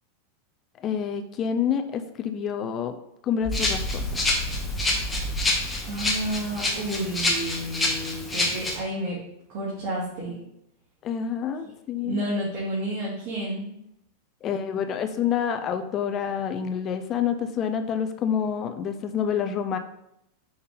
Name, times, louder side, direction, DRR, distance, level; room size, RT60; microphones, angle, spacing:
voice 1, 0.8-3.0 3.2-4.2 11.0-12.2 14.4-19.8, left 8 dB, 30° left, 7 dB, 0.4 m, -28 dB
sound 1, 3.4-7.3, equal, 45° left, 1.1 m, -33 dB
Rattle (instrument), 3.5-8.8, left 2 dB, 5° left, 1.1 m, -27 dB
voice 2, 5.8-9.2 9.5-10.3 11.6-11.7 12.0-13.7, right 1 dB, 50° right, -7 dB, 2.3 m, -30 dB
5.6 x 5.4 x 3.8 m, 0.80 s
supercardioid pair, 150°, 0 cm